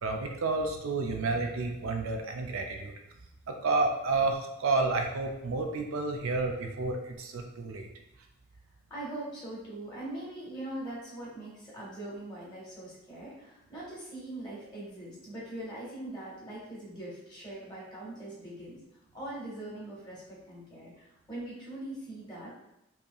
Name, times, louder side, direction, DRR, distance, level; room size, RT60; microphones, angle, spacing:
voice 1, 0.0-2.9 3.5-7.9, right 3 dB, 75° right, 3 dB, 0.5 m, -30 dB
voice 2, 8.9-18.8 19.1-22.5, right 1 dB, 20° left, -6 dB, 1.5 m, -42 dB
5.4 x 2.8 x 2.3 m, 0.87 s
head